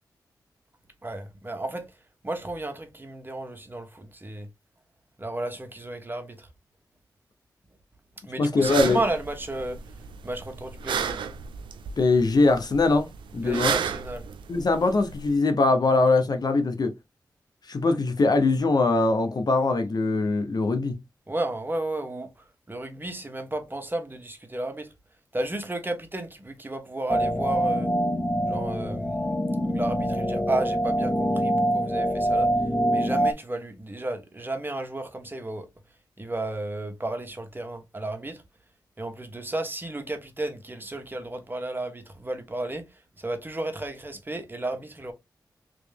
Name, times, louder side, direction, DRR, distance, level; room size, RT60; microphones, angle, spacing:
voice 1, 1.0-1.9 2.2-4.5 5.2-6.5 8.2-9.8 10.2-11.2 13.4-14.2 21.3-22.3 22.7-24.9 25.3-27.9 28.5-29.3 29.7-32.5 32.9-35.7 36.2-38.4 39.0-42.9 43.2-45.1, right 2 dB, 25° right, 1.2 m, -33 dB
voice 2, 8.4-9.0 12.0-13.8 14.5-16.9 17.7-21.0, left 3 dB, 55° left, 0.8 m, -22 dB
sound 1, 8.6-15.3, right 7 dB, 90° right, 0.4 m, -33 dB
sound 2, 27.1-33.3, equal, 15° left, 0.5 m, -25 dB
3.2 x 3.0 x 3.4 m
cardioid pair, 45°, 8 cm